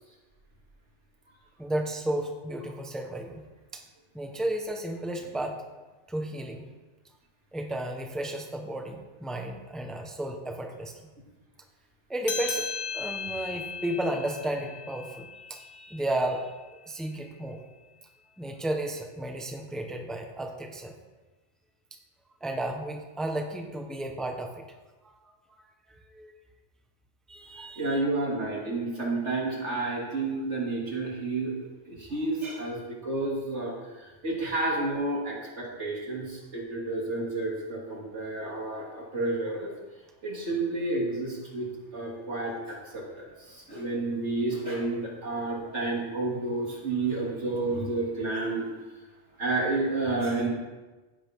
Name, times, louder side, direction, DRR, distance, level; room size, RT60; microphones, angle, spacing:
voice 1, 1.6-3.4 3.7-3.8 4.1-5.6 6.1-6.7 7.5-11.0 12.1-12.7 12.9-16.5 16.9-17.6 18.4-20.9 22.4-24.6 25.0-25.2 25.5-25.6 25.9-26.3 27.3-28.0, right 1 dB, ahead, 3 dB, 1.1 m, -33 dB
sound 1, 12.2-17.1, left 6 dB, 85° left, 1.2 m, -37 dB
voice 2, 27.8-31.5 31.8-39.7 40.2-48.7 49.4-50.5, right 2 dB, 80° right, -3 dB, 3.2 m, -30 dB
15.5 x 10.5 x 3.7 m, 1.2 s
omnidirectional pair, 1.2 m